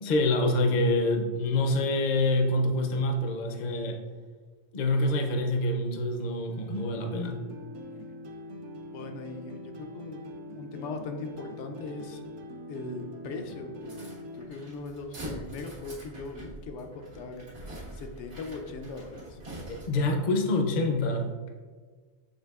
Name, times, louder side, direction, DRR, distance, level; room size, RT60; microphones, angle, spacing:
voice 1, 0.0-4.0 4.7-7.4 19.7-21.3, left 2 dB, 50° left, 4 dB, 0.6 m, -26 dB
sound 1, 6.5-14.5, left 1 dB, 70° right, 0.8 m, -43 dB
voice 2, 8.9-10.2 10.5-12.3 12.7-14.0 14.4-19.4, left 3 dB, 80° left, 5 dB, 0.9 m, -40 dB
sound 2, 13.8-20.2, equal, 90° right, 1.7 m, -44 dB
6.6 x 3.3 x 2.3 m, 1.5 s
omnidirectional pair, 1.2 m